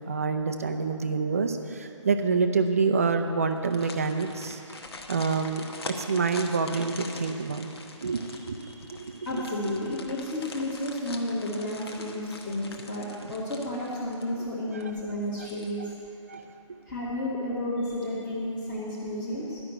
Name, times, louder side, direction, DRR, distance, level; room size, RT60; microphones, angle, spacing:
voice 1, 0.0-4.6 5.1-5.6 6.0-7.7 8.0-9.4 14.7-14.8 15.4-15.5 15.8-15.9 16.3-16.5, right 4 dB, 30° right, 7 dB, 0.5 m, -27 dB
sound 1, 3.5-14.4 14.8-14.9 15.3-16.0 16.3-16.4, left 3 dB, 50° left, 1.1 m, -43 dB
voice 2, 8.7-15.9 16.9-19.6, left 1 dB, 20° left, -10 dB, 1.3 m, -32 dB
11.5 x 5.9 x 8.8 m, 2.7 s
figure-of-eight pair, 165°, 16 cm